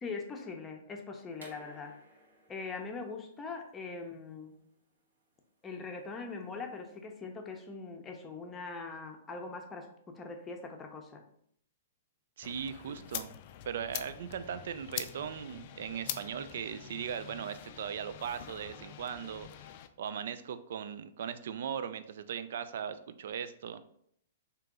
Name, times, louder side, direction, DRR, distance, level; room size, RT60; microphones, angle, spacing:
voice 1, 0.0-1.9 2.5-4.6 5.6-11.2, left 4 dB, 20° left, 3 dB, 0.6 m, -42 dB
sound 1, 1.3-6.9, right 1 dB, 85° right, 1.1 m, -59 dB
sound 2, 12.4-19.9, left 11 dB, 50° left, 0.3 m, -44 dB
voice 2, 12.4-13.3 13.7-19.5 20.0-23.8, right 8 dB, 65° right, 11 dB, 0.3 m, -38 dB
3.5 x 2.8 x 3.7 m, 0.68 s
hypercardioid pair, 120°, 0 cm